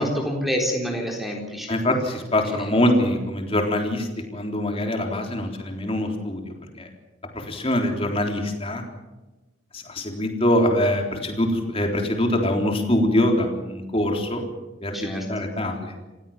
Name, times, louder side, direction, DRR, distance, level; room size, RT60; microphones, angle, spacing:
voice 1, 0.0-1.7 2.4-2.6 14.9-15.3, equal, ahead, 0 dB, 4.0 m, -27 dB
voice 2, 1.7-6.4 6.8-6.9 7.5-8.8 9.7-14.5 14.8-15.9, left 1 dB, 30° left, 2 dB, 3.8 m, -23 dB
27.5 x 16.5 x 7.4 m, 1.1 s
head